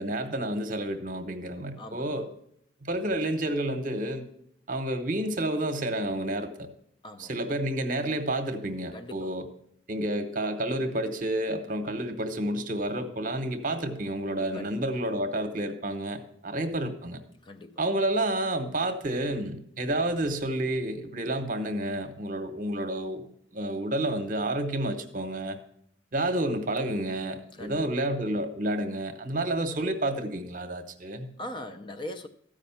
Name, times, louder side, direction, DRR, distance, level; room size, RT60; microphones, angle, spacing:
voice 1, 0.0-2.3 2.8-4.3 4.7-6.7 7.2-9.5 9.9-17.2 17.8-25.6 26.1-31.3, right 1 dB, 45° right, 0.8 m, -30 dB
voice 2, 1.8-2.3 7.0-7.5 8.9-9.3 14.5-14.8 17.4-17.8 27.5-27.9 31.4-32.3, left 1 dB, 25° left, 0.4 m, -40 dB
13.5 x 5.1 x 5.6 m
head